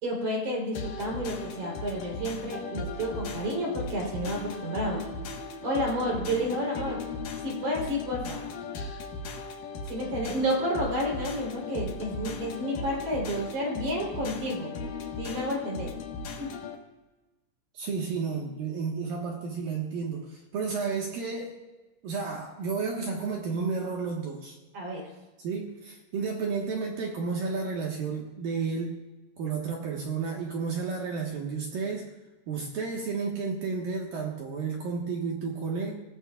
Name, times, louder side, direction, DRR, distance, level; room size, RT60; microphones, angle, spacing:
voice 1, 0.0-5.0 5.6-7.1 7.4-8.4 9.9-14.7 15.2-15.9 16.4-16.5 24.7-25.1, equal, 40° right, -2 dB, 4.6 m, -30 dB
sound 1, 0.7-16.8, left 3 dB, 70° left, 2.0 m, -37 dB
voice 2, 17.7-21.6 22.0-24.5 25.4-29.0 29.4-32.1 32.5-36.0, right 5 dB, 65° right, 0 dB, 2.4 m, -32 dB
27.5 x 16.5 x 2.4 m, 1.1 s
omnidirectional pair, 5.9 m